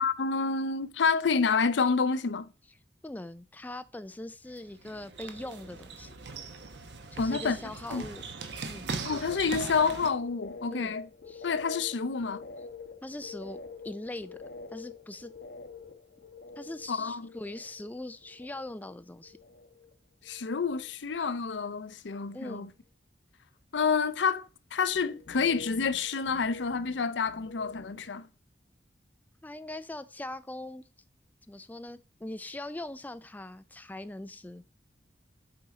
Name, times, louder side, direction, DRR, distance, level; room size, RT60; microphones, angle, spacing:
voice 1, 0.0-2.5 7.2-7.6 7.9-8.0 9.0-11.1 11.4-12.4 16.9-17.3 20.2-22.7 23.7-28.3, left 5 dB, 85° left, 0.6 m, -28 dB
voice 2, 3.0-6.1 7.1-8.2 8.7-8.9 10.7-11.0 11.3-11.5 13.0-13.6 13.8-15.3 16.6-19.4 22.3-22.7 29.4-30.8 31.5-34.6, left 1 dB, 10° left, 0.3 m, -41 dB
sound 1, 4.5-10.1, right 4 dB, 75° right, 1.0 m, -40 dB
sound 2, 10.0-19.0 19.2-19.9 20.2-20.9 21.2-21.7 24.9-28.1, left 4 dB, 70° left, 1.2 m, -47 dB
7.8 x 4.1 x 4.9 m
head